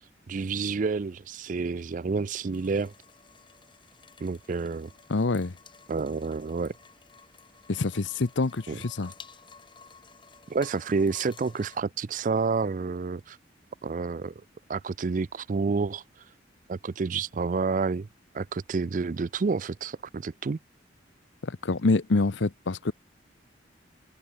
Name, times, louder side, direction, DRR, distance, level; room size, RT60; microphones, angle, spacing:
voice 1, 0.3-2.9 4.2-4.9 5.9-6.7 8.7-8.8 10.5-13.4 13.8-14.3 14.7-16.0 16.7-18.1 18.3-20.6, right 4 dB, 45° right, 0.4 m, -29 dB
sound 1, 2.5-11.8, left 5 dB, 25° left, 2.5 m, -52 dB
voice 2, 5.1-5.5 7.7-9.1 21.4-22.9, left 3 dB, 80° left, 0.8 m, -26 dB
head